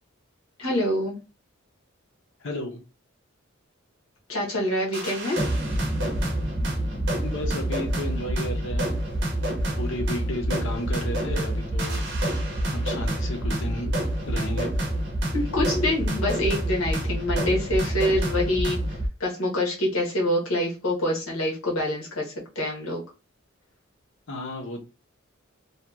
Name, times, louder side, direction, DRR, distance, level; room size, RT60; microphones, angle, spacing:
voice 1, 0.6-1.2 4.3-5.4 15.3-18.8 19.2-23.0, left 1 dB, 85° left, -2 dB, 1.0 m, -26 dB
voice 2, 2.4-2.8 7.2-9.0 9.8-12.0 12.7-13.9 14.2-14.7 24.3-24.8, left 1 dB, 65° left, 4 dB, 0.7 m, -33 dB
sound 1, 4.9-19.1, right 1 dB, 60° right, 0.7 m, -27 dB
2.8 x 2.3 x 2.3 m, 0.29 s
head